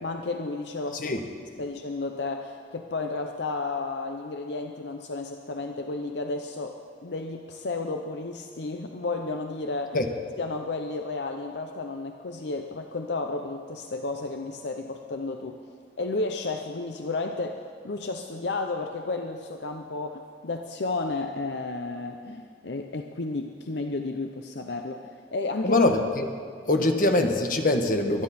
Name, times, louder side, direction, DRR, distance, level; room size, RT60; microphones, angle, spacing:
voice 1, 0.0-1.2 1.6-10.0 10.4-15.6 16.0-25.8 26.8-26.9, left 3 dB, 70° left, 5 dB, 0.7 m, -32 dB
voice 2, 25.6-26.3 26.6-28.2, left 2 dB, 50° left, 4 dB, 1.2 m, -23 dB
23.5 x 10.5 x 4.3 m, 2.2 s
head